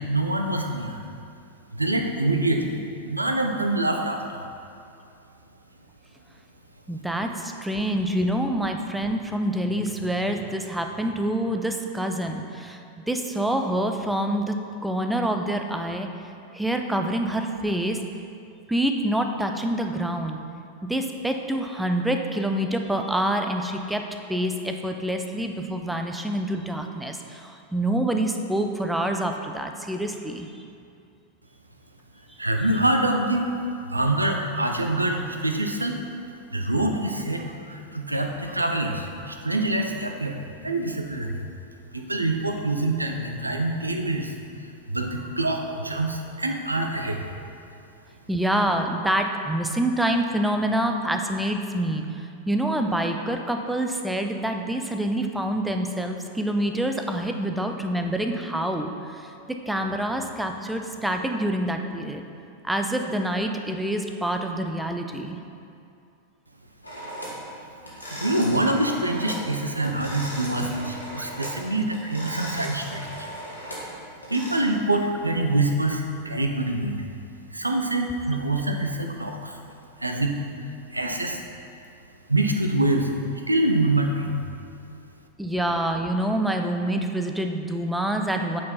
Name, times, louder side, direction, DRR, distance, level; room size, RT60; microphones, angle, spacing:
voice 1, 0.1-1.0 1.7-2.8 3.0-4.4 32.4-33.5 33.8-36.0 36.5-40.4 40.6-41.4 41.9-44.4 44.6-47.3 68.1-73.3 74.3-77.0 77.5-79.6 80.0-80.4 80.7-81.4 82.3-83.1 83.5-84.4, right 2 dB, 85° right, 4 dB, 0.6 m, -25 dB
voice 2, 6.9-12.8 13.1-14.5 14.8-16.1 16.5-18.0 18.7-20.4 20.8-30.5 48.3-62.2 62.6-65.4 71.2-71.3 85.4-88.6, right 1 dB, 5° right, 4 dB, 0.5 m, -26 dB
sound 1, 66.8-67.4 67.8-69.5 69.7-71.6 71.9-74.6, equal, 85° left, 1.5 m, -37 dB
8.3 x 4.5 x 4.3 m, 2.5 s
figure-of-eight pair, 90°, 0 cm